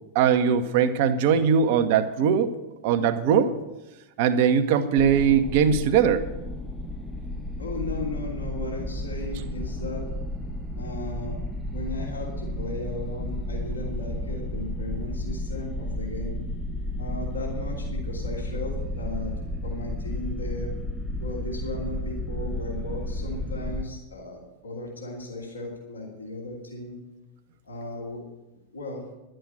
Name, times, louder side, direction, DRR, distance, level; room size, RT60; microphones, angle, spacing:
voice 1, 0.1-2.5 2.8-3.5 4.2-6.2, right 7 dB, 50° right, 10 dB, 1.0 m, -20 dB
sound 1, 5.0-23.8, left 1 dB, 5° right, 0.8 m, -32 dB
voice 2, 7.6-10.1 10.8-11.3 11.7-16.4 17.0-19.3 19.6-20.7 21.2-27.0 27.6-28.2 28.7-29.0, left 2 dB, 75° left, -2 dB, 3.0 m, -36 dB
11.5 x 7.7 x 9.1 m, 1.0 s
figure-of-eight pair, 90°, 0 cm